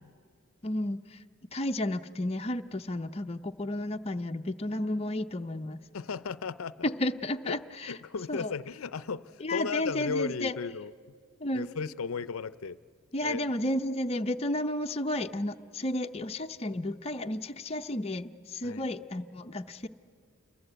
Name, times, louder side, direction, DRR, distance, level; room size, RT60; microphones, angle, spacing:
voice 1, 0.6-1.2 1.5-5.8 6.8-8.0 8.3-8.5 9.4-10.6 11.4-11.7 13.1-19.9, left 1 dB, 30° left, 5 dB, 0.6 m, -32 dB
voice 2, 5.9-6.9 7.5-7.6 7.9-10.9 11.5-12.8 13.2-13.4 18.6-18.8, left 5 dB, 80° left, 16 dB, 0.5 m, -35 dB
28.0 x 22.0 x 7.9 m, 2.1 s
head